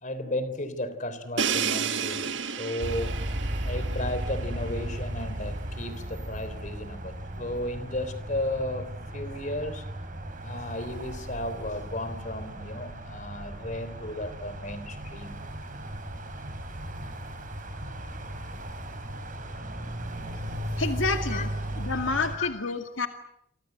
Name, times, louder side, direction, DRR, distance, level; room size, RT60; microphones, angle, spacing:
voice 1, 0.0-3.1 3.6-8.9 9.1-9.9 10.4-15.3 21.3-21.5 22.3-22.5 22.9-23.1, left 1 dB, 40° left, 12 dB, 3.7 m, -34 dB
Crash cymbal, 1.4-5.2, right 7 dB, 65° right, 1.6 m, -32 dB
sound 1, 2.8-22.4, right 1 dB, 45° right, 5.0 m, -36 dB
voice 2, 20.8-21.5 21.8-23.1, left 4 dB, 80° left, 6 dB, 2.2 m, -29 dB
28.0 x 25.0 x 8.0 m, 0.74 s
head